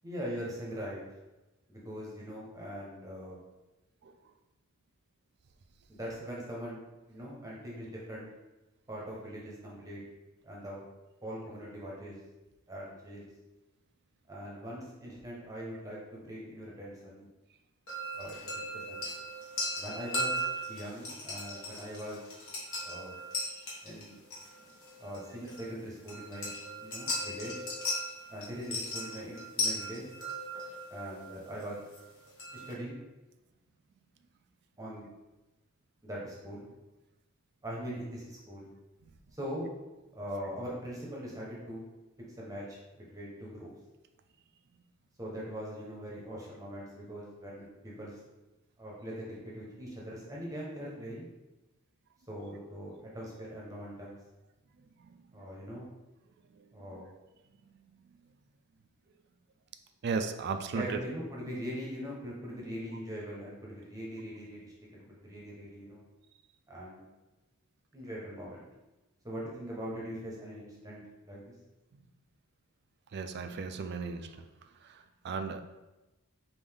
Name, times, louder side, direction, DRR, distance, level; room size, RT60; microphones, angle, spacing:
voice 1, 0.0-1.0 1.7-3.4 5.9-8.3 8.9-10.0 10.4-10.8 11.2-12.2 12.7-13.3 14.3-17.3 18.1-19.1 19.8-20.4 20.7-22.3 22.8-23.2 23.8-24.2 25.0-27.6 28.3-30.1 30.9-31.8 32.5-33.0 34.8-35.1 36.0-36.7 37.6-38.7 39.4-39.7 40.1-41.9 42.4-43.7 45.2-48.2 48.8-51.3 52.3-54.2 55.3-55.9 56.7-57.1 60.7-66.0 66.7-67.0 67.9-68.7 69.2-71.5, equal, 15° right, -5 dB, 0.8 m, -41 dB
sound 1, 17.9-32.7, equal, 60° left, 1.4 m, -38 dB
voice 2, 60.0-61.0 73.1-74.3 74.9-75.0 75.2-75.6, right 5 dB, 50° right, 8 dB, 0.3 m, -34 dB
5.4 x 2.6 x 3.4 m, 1.0 s
head